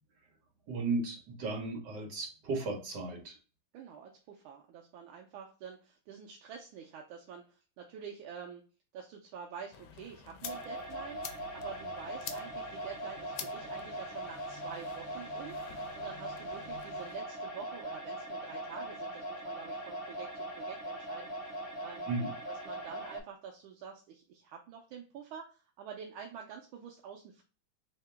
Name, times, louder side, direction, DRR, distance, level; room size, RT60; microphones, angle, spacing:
voice 1, 0.7-3.4 22.1-22.3, right 3 dB, 60° right, 0 dB, 1.7 m, -35 dB
voice 2, 3.7-8.6 8.9-21.3 21.8-22.1 22.5-27.4, right 7 dB, 85° right, 1 dB, 1.4 m, -47 dB
sound 1, 9.7-17.2, left 8 dB, 80° left, 1.4 m, -48 dB
sound 2, 10.4-23.2, right 1 dB, 5° right, 1.0 m, -41 dB
3.7 x 2.8 x 3.2 m, 0.36 s
omnidirectional pair, 2.2 m